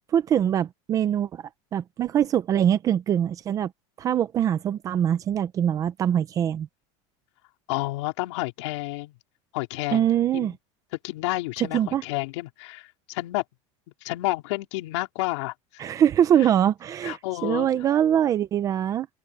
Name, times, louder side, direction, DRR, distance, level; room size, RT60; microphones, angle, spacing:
voice 1, 0.1-1.4 1.7-3.7 4.0-6.7 9.9-10.6 11.7-12.0 15.8-19.1, right 10 dB, 20° right, 0.7 m, -23 dB
voice 2, 7.7-9.1 9.5-10.1 10.3-10.5 11.0-13.4 14.0-15.5 16.4-16.5 17.0-17.8, left 21 dB, 65° left, 4.0 m, -30 dB
open air
supercardioid pair, 175°, 16 cm